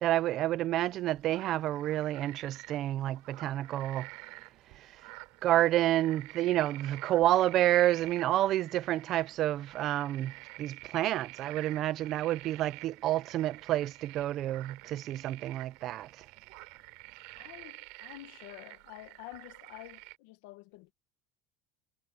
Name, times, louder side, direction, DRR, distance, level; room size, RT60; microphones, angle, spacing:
voice 1, 0.0-4.1 5.4-10.3 10.6-16.1, right 14 dB, 50° right, 0.7 m, -29 dB
sound 1, 0.9-20.2, right 29 dB, 75° right, 5.9 m, -49 dB
voice 2, 17.4-20.9, left 19 dB, 80° left, 1.9 m, -49 dB
cardioid pair, 130°, 0 cm